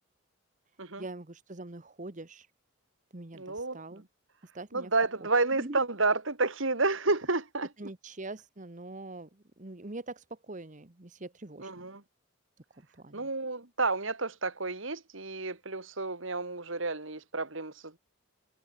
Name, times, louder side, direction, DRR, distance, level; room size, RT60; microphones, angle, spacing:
voice 1, 1.0-2.5 3.1-4.0 4.5-4.9 5.6-5.8 7.8-11.9 12.7-13.3, right 2 dB, 35° right, 1.2 m, -43 dB
voice 2, 3.3-4.0 4.7-7.7 11.6-12.0 13.1-18.0, right 3 dB, 65° right, 2.5 m, -30 dB
head